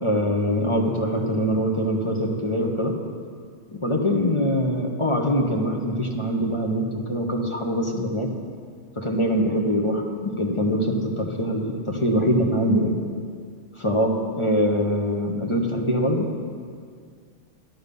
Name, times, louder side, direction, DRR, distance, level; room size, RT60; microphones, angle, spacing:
voice 1, 0.0-2.9 3.7-8.3 9.0-13.0 13.8-16.3, equal, 25° left, 0 dB, 1.2 m, -23 dB
12.5 x 12.0 x 5.4 m, 2.1 s
omnidirectional pair, 1.2 m